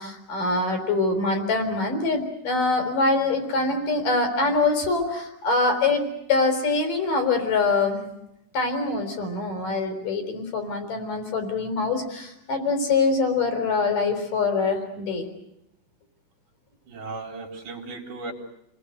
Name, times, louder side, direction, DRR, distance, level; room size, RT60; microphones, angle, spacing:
voice 1, 0.0-6.0 6.3-8.0 8.5-15.3, left 3 dB, 45° left, 6 dB, 5.4 m, -24 dB
voice 2, 16.9-18.3, right 3 dB, 40° right, 2 dB, 4.8 m, -36 dB
30.0 x 21.0 x 8.1 m, 0.83 s
omnidirectional pair, 5.6 m